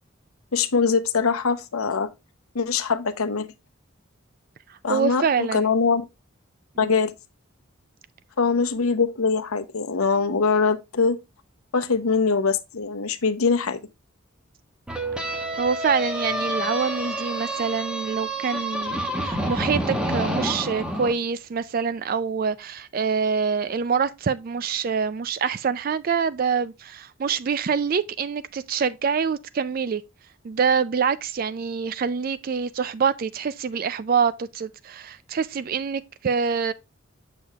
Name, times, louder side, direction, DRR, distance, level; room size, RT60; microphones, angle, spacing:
voice 1, 0.5-2.1 2.5-3.5 4.8-6.1 6.8-7.1 8.4-11.2 11.7-13.8, left 5 dB, 85° left, 0.8 m, -23 dB
voice 2, 4.7-5.7 6.8-6.9 15.6-30.0 30.4-36.7, right 6 dB, 45° right, 0.3 m, -25 dB
sound 1, 14.9-21.1, right 1 dB, 5° right, 1.0 m, -28 dB
7.3 x 6.2 x 2.3 m
head